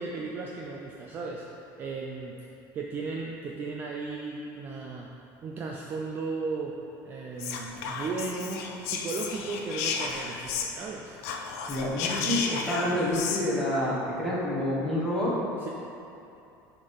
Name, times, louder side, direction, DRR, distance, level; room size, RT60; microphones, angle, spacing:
voice 1, 0.0-1.4 1.8-2.4 2.7-5.1 5.4-6.8 7.0-11.2 15.6-15.7, right 4 dB, 25° right, -1 dB, 0.4 m, -35 dB
Whispering, 7.4-10.9 11.2-13.4, left 5 dB, 85° left, 0.6 m, -33 dB
voice 2, 11.7-15.3, left 1 dB, 5° left, -8 dB, 1.2 m, -28 dB
6.9 x 3.6 x 5.3 m, 2.8 s
cardioid pair, 175°, 8 cm